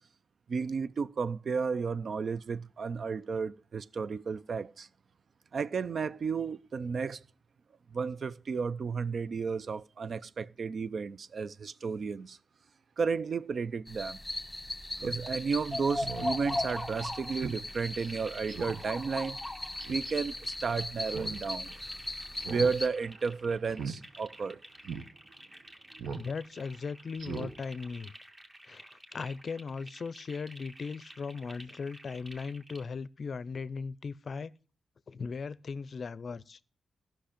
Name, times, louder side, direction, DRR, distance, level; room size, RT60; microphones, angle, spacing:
voice 1, 0.5-4.9 5.5-7.2 7.9-12.4 13.0-14.2 15.0-19.4 19.9-21.7 22.4-24.6 25.9-26.0, right 5 dB, 60° right, 0.4 m, -33 dB
sound 1, 13.9-22.9, left 1 dB, 10° left, 1.3 m, -37 dB
Speech synthesizer, 15.0-15.2 15.6-15.7 16.0-16.3 16.7-16.8 17.4-17.6 18.0-18.1 18.5-18.8 19.8-20.1 21.0-21.4 21.7-21.8 22.4-22.7 23.0-23.2 23.7-24.0 24.4-24.5 24.8-25.0 26.0-26.3 26.6-26.7 27.2-27.5 27.9-28.0, right 6 dB, 75° right, 1.1 m, -40 dB
sound 2, 15.3-32.8, right 1 dB, 25° right, 1.4 m, -52 dB
voice 2, 26.1-28.1 28.6-34.5 35.1-36.6, left 5 dB, 55° left, 0.5 m, -38 dB
14.5 x 5.9 x 5.0 m
cardioid pair, 95°, 0 cm